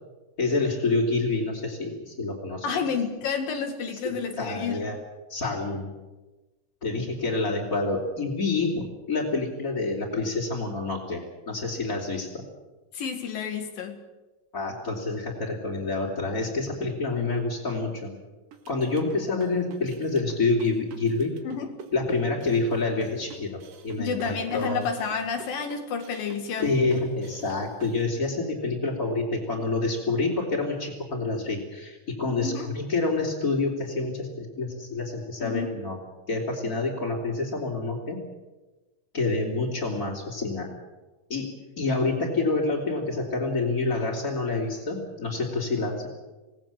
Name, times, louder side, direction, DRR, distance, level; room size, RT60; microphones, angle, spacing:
voice 1, 0.4-2.7 4.0-5.0 5.3-5.9 6.8-12.4 14.5-18.2 18.7-21.3 21.9-24.8 26.6-36.0 36.3-38.2 39.1-40.7 41.3-46.1, left 3 dB, 25° left, -5 dB, 3.5 m, -28 dB
voice 2, 2.6-4.9 12.9-14.0 21.4-21.8 24.0-26.8 32.4-32.7 35.4-35.8, left 6 dB, 75° left, 5 dB, 3.7 m, -30 dB
sound 1, 18.5-28.0, right 7 dB, 75° right, 3.4 m, -47 dB
27.0 x 18.5 x 7.6 m, 1.2 s
omnidirectional pair, 4.0 m